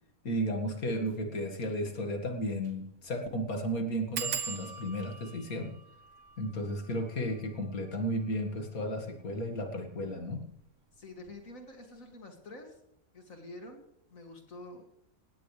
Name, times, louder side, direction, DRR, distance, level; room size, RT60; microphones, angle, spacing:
voice 1, 0.2-5.8 6.4-10.4, equal, 85° left, 4 dB, 2.5 m, -34 dB
sound 1, 1.0-1.2 1.6-1.7 1.9-2.0 2.6-2.8 3.1-3.2 4.1-9.4 10.1-10.6 10.9-11.3 11.5-11.6, right 6 dB, 60° right, 1.3 m, -42 dB
voice 2, 10.9-12.8 13.1-14.9, left 2 dB, 70° left, 3 dB, 3.0 m, -48 dB
18.5 x 16.0 x 3.4 m, 0.77 s
omnidirectional pair, 1.5 m